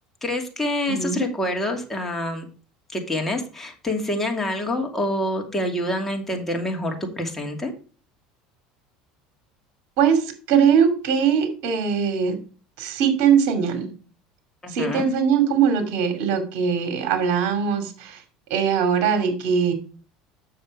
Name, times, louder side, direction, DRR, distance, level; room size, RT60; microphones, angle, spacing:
voice 1, 0.2-2.5 2.9-7.7 14.6-15.1, left 1 dB, 10° left, 2 dB, 2.6 m, -26 dB
voice 2, 0.9-1.2 10.0-12.4 12.8-13.9 14.7-18.2 18.5-19.7, right 7 dB, 65° right, 7 dB, 2.5 m, -21 dB
7.8 x 6.5 x 4.8 m, 0.37 s
supercardioid pair, 115°, 3 cm